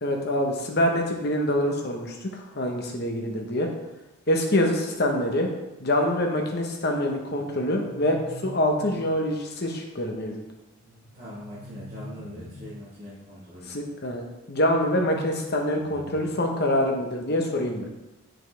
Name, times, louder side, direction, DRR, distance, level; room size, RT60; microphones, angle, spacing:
voice 1, 0.0-3.7 4.3-5.5 5.8-10.4 13.6-17.9, left 1 dB, 45° left, 2 dB, 1.0 m, -25 dB
sound 1, 7.4-9.4 11.0-12.9 14.7-16.7, left 1 dB, 70° left, 1.1 m, -44 dB
voice 2, 10.8-13.8, equal, 35° right, -12 dB, 2.4 m, -42 dB
7.1 x 5.9 x 3.4 m, 0.98 s
head